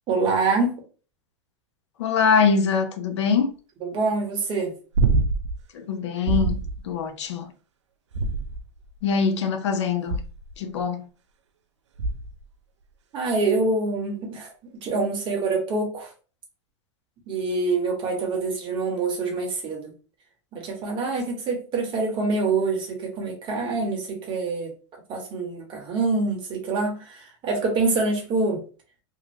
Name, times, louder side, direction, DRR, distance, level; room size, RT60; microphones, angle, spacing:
voice 1, 0.1-0.8 3.8-4.7 13.1-14.5 14.8-16.1 17.3-19.9 20.5-24.7 25.1-28.6, right 3 dB, 35° right, 1.3 m, -25 dB
voice 2, 2.0-3.5 5.7-6.6 6.8-7.5 9.0-10.2 10.6-11.0, left 6 dB, 75° left, 0.7 m, -23 dB
sound 1, 4.9-5.6 6.3-6.8 8.1-8.8 10.1-10.5 12.0-12.4 14.8-14.9, right 3 dB, 80° right, 0.5 m, -24 dB
2.8 x 2.5 x 3.1 m
hypercardioid pair, 110°, 15 cm